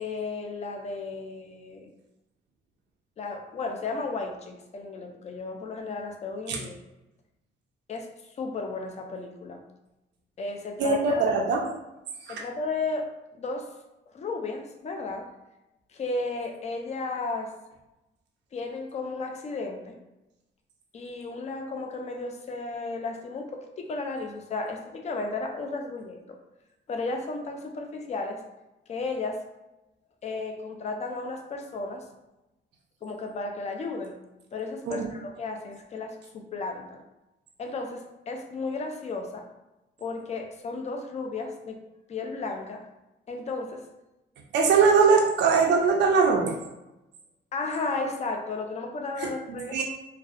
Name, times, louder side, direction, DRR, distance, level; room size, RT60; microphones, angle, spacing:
voice 1, 0.0-1.9 3.2-6.8 7.9-8.1 8.4-9.6 10.4-11.2 12.3-13.1 13.4-13.7 14.1-15.3 15.9-17.5 18.5-20.0 20.9-26.4 26.9-28.4 28.9-29.4 30.2-32.0 33.0-34.2 34.5-37.0 37.6-39.5 40.0-41.8 42.1-42.9 43.3-43.8 47.5-49.8, left 3 dB, 35° left, 4 dB, 0.4 m, -34 dB
voice 2, 10.8-11.6 12.2-12.4 34.9-35.1 44.5-46.6 49.2-49.3 49.7-49.8, right 5 dB, 65° right, 0 dB, 0.4 m, -21 dB
2.6 x 2.0 x 2.4 m, 0.97 s
cardioid pair, 90°, 20 cm